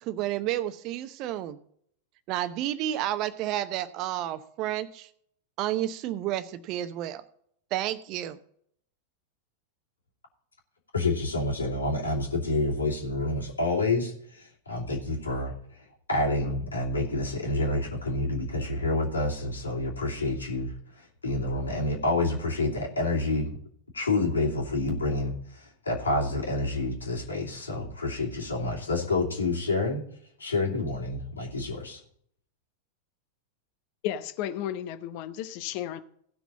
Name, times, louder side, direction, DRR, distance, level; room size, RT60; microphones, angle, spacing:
voice 1, 0.0-1.6 2.3-5.1 5.6-7.2 7.7-8.4, right 13 dB, 40° right, 0.8 m, -31 dB
voice 2, 10.9-15.5 16.1-23.5 23.9-30.0 30.4-32.0, left 2 dB, 75° left, 2.6 m, -28 dB
voice 3, 34.0-36.0, left 11 dB, 45° left, 0.9 m, -33 dB
16.5 x 6.1 x 4.1 m
figure-of-eight pair, 90°, 0 cm